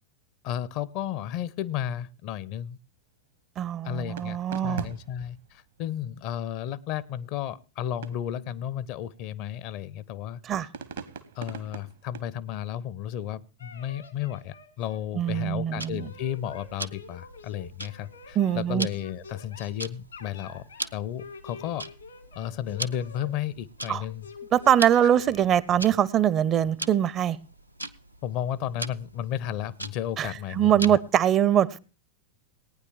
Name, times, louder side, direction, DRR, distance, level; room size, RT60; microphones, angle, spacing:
voice 1, 0.4-2.8 3.8-4.4 4.6-10.7 11.4-21.9 22.3-24.3 28.2-31.0, left 10 dB, 45° left, 20 dB, 0.6 m, -33 dB
voice 2, 3.6-4.9 10.4-10.7 15.1-16.1 18.4-18.9 23.9-24.0 24.5-27.4 30.2-30.3 30.5-31.8, right 10 dB, 30° right, 21 dB, 0.5 m, -23 dB
sound 1, 4.2-6.1 8.0-8.4 9.0-10.1 10.7-12.9, right 7 dB, 65° right, 0.9 m, -42 dB
sound 2, 13.6-15.0 15.2-15.5 15.8-19.7 20.1-20.9 21.2-23.3 23.8-25.5, left 4 dB, 75° left, 1.7 m, -47 dB
Tick-tock, 15.8-31.2, right 1 dB, 90° right, 0.5 m, -41 dB
18.0 x 9.5 x 3.4 m, 0.33 s
figure-of-eight pair, 90°, 0 cm